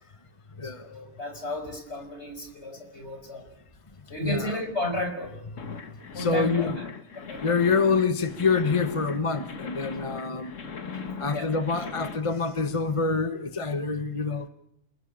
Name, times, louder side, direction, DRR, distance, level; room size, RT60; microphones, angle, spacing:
voice 1, 0.6-3.5 4.1-5.3 6.1-6.9 7.1-7.5 11.1-11.5, left 1 dB, 60° left, 5.5 m, -33 dB
voice 2, 4.2-4.6 5.4-5.8 6.1-6.8 7.4-14.5, left 4 dB, 25° left, 1.1 m, -26 dB
sound 1, 5.6-12.2, left 5 dB, 80° left, 2.0 m, -39 dB
29.0 x 18.5 x 8.7 m
omnidirectional pair, 1.3 m